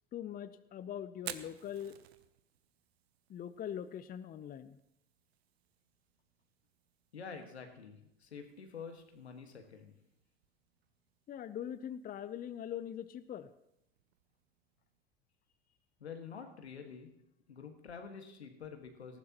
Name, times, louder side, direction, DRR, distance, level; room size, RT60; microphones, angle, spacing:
voice 1, 0.1-2.0 3.3-4.8 11.3-13.5, left 9 dB, 30° left, 14 dB, 0.6 m, -42 dB
Fire, 1.1-15.0, right 11 dB, 75° right, 0.9 m, -56 dB
voice 2, 7.1-10.0 16.0-17.1 17.5-19.2, left 6 dB, 90° left, 5 dB, 1.7 m, -48 dB
18.5 x 14.5 x 3.0 m, 0.81 s
hypercardioid pair, 80°, 31 cm